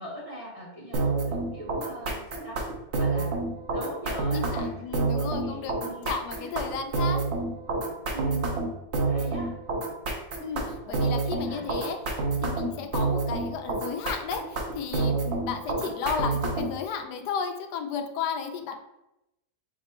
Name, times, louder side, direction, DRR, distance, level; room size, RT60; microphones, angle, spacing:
voice 1, 0.0-2.6 3.0-3.5 3.7-4.8 5.2-6.5 8.1-8.6 9.1-9.5 10.8-11.6 12.6-12.9, equal, 25° right, -4 dB, 0.9 m, -41 dB
sound 1, 0.9-16.8, right 3 dB, 55° right, 0.9 m, -28 dB
voice 2, 4.3-7.2 10.4-12.0 12.4-18.8, left 6 dB, 90° left, 5 dB, 1.2 m, -33 dB
6.0 x 2.0 x 4.2 m, 0.88 s
omnidirectional pair, 1.7 m